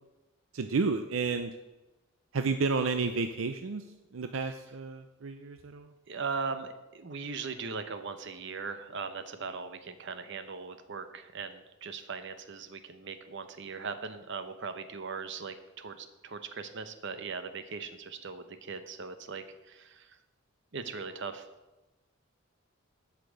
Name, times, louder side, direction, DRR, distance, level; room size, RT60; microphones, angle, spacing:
voice 1, 0.5-1.5 2.3-3.8 4.1-5.9, right 4 dB, 80° right, 8 dB, 0.6 m, -31 dB
voice 2, 6.1-20.2 20.7-21.5, right 5 dB, 65° right, 10 dB, 0.9 m, -39 dB
8.3 x 5.9 x 8.0 m, 1.0 s
head